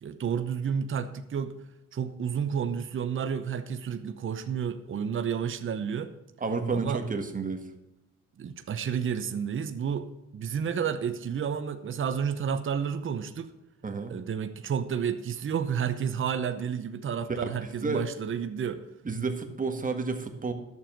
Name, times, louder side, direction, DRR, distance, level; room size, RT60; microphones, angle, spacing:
voice 1, 0.0-1.5 1.9-6.1 6.7-7.0 8.4-10.1 10.3-13.5 14.1-18.8, right 7 dB, 40° right, 9 dB, 0.9 m, -31 dB
voice 2, 6.4-7.6 13.8-14.2 17.3-17.5 17.8-18.1 19.1-20.5, right 4 dB, 25° right, 5 dB, 1.7 m, -30 dB
11.0 x 7.1 x 7.4 m, 0.91 s
cardioid pair, 90°, 30 cm